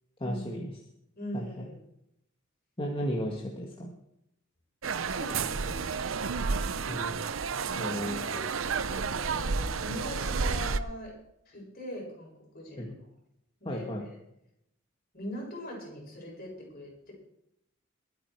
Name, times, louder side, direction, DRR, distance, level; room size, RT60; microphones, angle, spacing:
voice 1, 0.2-0.7 1.3-1.7 2.8-3.9 6.9-8.2 12.8-12.9 13.7-14.1, equal, 25° left, 0 dB, 1.8 m, -35 dB
voice 2, 1.2-1.8 4.9-6.5 7.6-8.5 8.8-11.2 11.5-12.9 13.6-14.1 15.1-17.1, equal, 50° left, -3 dB, 7.6 m, -42 dB
sound 1, 4.8-10.8, right 5 dB, 80° right, 0.7 m, -31 dB
22.5 x 9.1 x 4.8 m, 0.80 s
head